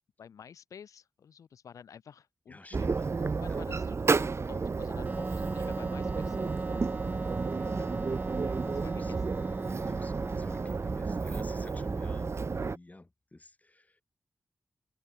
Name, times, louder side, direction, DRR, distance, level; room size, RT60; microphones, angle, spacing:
voice 1, 0.2-7.2 7.7-7.9 8.6-9.3, left 7 dB, 80° left, 7.6 m, -51 dB
voice 2, 2.5-3.0 3.5-3.6 9.0-9.2 9.9-14.0, left 2 dB, 25° left, 4.9 m, -52 dB
sound 1, 2.7-12.8, right 4 dB, 55° right, 2.4 m, -32 dB
Wind instrument woodwind instrument, 5.0-11.5, right 2 dB, 30° right, 7.6 m, -39 dB
open air
supercardioid pair, 40°, 6 cm